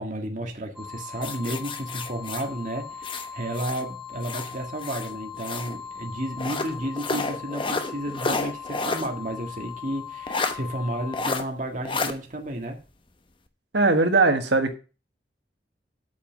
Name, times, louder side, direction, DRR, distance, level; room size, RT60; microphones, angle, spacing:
voice 1, 0.0-12.8, right 1 dB, 45° right, 1.7 m, -32 dB
sound 1, 0.8-11.4, left 8 dB, ahead, 1.1 m, -40 dB
sound 2, 1.2-3.9 4.2-5.8 6.4-9.1 9.5-9.6 10.3-10.6 11.1-11.4 11.9-12.1, left 3 dB, 30° left, 0.9 m, -30 dB
voice 2, 13.7-14.8, right 3 dB, 85° right, 1.6 m, -20 dB
8.4 x 5.6 x 7.4 m
head